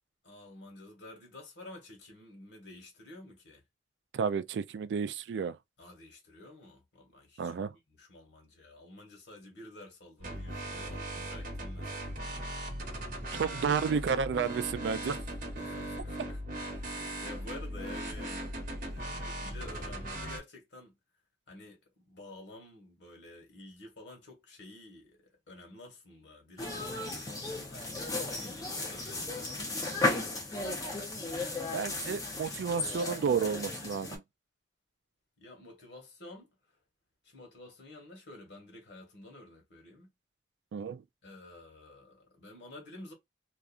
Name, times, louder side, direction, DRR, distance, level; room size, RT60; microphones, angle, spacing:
voice 1, 0.2-3.6 5.8-7.5 7.9-12.2 13.3-14.0 15.5-18.5 18.9-21.0 21.5-30.1 35.4-36.8 37.2-40.1 41.2-43.1, left 2 dB, 85° left, 1.4 m, -51 dB
voice 2, 4.1-5.6 7.4-7.7 13.4-15.2 31.7-34.2 40.7-41.0, right 6 dB, 80° right, 0.3 m, -31 dB
sound 1, 10.2-20.4, right 1 dB, 50° right, 1.0 m, -38 dB
sound 2, 26.6-34.2, left 2 dB, 20° left, 0.8 m, -35 dB
2.7 x 2.4 x 2.4 m
head